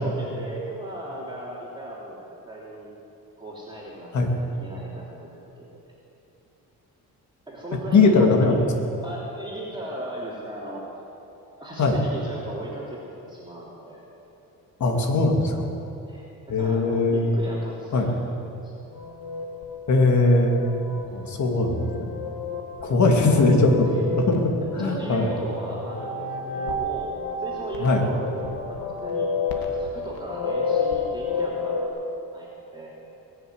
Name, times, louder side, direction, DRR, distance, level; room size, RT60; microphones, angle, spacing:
voice 1, 0.0-2.9 3.4-5.3 7.5-8.6 9.0-11.0 11.5-14.0 16.1-18.3 18.6-18.9 20.9-21.4 22.8-23.4 23.8-24.0 24.8-27.1 27.4-31.9 32.3-32.9, right 1 dB, 15° right, -6 dB, 3.2 m, -37 dB
voice 2, 7.9-8.6 11.8-11.9 14.8-15.7 16.5-17.3 17.9-18.1 19.9-20.6 21.1-22.1 22.9-23.7 24.1-25.3 27.8-28.0, left 3 dB, 50° left, 2 dB, 2.5 m, -20 dB
sound 1, 18.9-31.9, left 4 dB, 75° left, 2.0 m, -31 dB
21.0 x 7.1 x 9.7 m, 2.9 s
cardioid pair, 100°, 35 cm